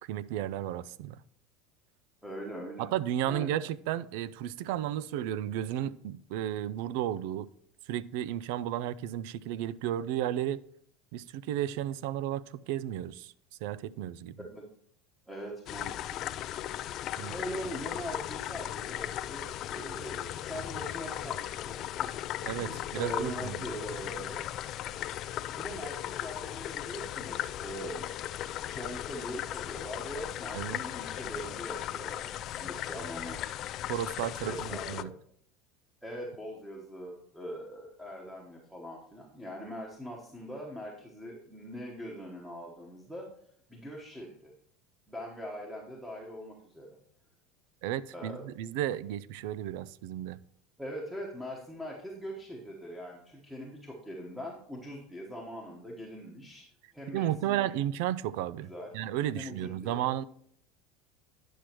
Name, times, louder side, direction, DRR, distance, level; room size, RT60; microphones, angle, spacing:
voice 1, 0.0-1.2 2.8-7.5 7.9-10.6 11.1-13.3 13.6-14.3 17.2-17.3 22.5-23.6 30.5-30.8 33.9-34.5 34.9-35.1 47.8-50.4 57.1-58.7 58.9-60.2, right 12 dB, 70° right, 19 dB, 0.3 m, -33 dB
voice 2, 2.2-2.9 3.2-3.5 14.5-14.6 15.3-16.2 17.3-22.1 22.4-24.4 25.6-28.1 28.7-33.6 34.4-35.1 36.0-43.3 43.7-44.5 45.1-47.0 48.1-48.4 50.8-56.6 56.9-57.7 58.6-58.9 59.3-60.0, equal, 5° right, -2 dB, 1.2 m, -42 dB
sound 1, 15.7-35.0, left 12 dB, 45° left, 0.3 m, -37 dB
10.0 x 6.2 x 3.0 m, 0.65 s
supercardioid pair, 135°, 0 cm